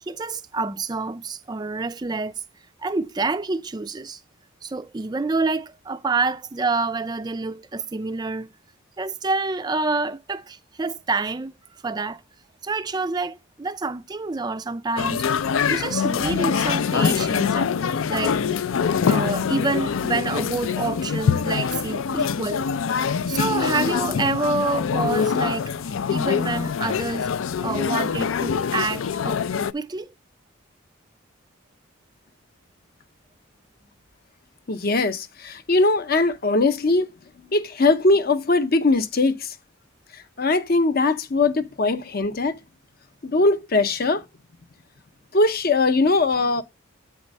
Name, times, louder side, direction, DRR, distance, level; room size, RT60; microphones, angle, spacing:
voice 1, 0.0-2.4 2.8-4.2 4.6-8.5 9.0-12.2 12.6-18.4 19.0-22.7 23.3-27.3 27.6-29.4 29.7-30.1, right 3 dB, 20° right, 0.3 m, -27 dB
sound 1, 15.0-29.7, left 6 dB, 75° left, 0.4 m, -24 dB
voice 2, 34.7-37.1 37.5-39.5 40.1-42.6 43.2-44.2 45.3-46.6, left 3 dB, 45° left, 0.7 m, -21 dB
8.1 x 4.4 x 5.2 m
head